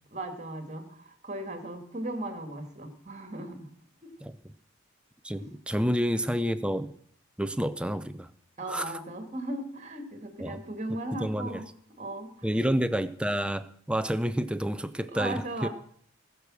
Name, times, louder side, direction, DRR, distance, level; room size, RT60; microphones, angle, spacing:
voice 1, 0.1-3.7 4.0-4.1 5.4-5.5 8.6-11.7 12.0-12.3 15.1-15.7, right 1 dB, 35° right, 7 dB, 2.0 m, -37 dB
voice 2, 5.2-6.9 7.4-8.3 8.7-8.9 10.4-10.6 10.9-11.6 12.4-15.7, equal, 5° right, 12 dB, 0.5 m, -29 dB
20.0 x 6.8 x 6.3 m, 0.62 s
head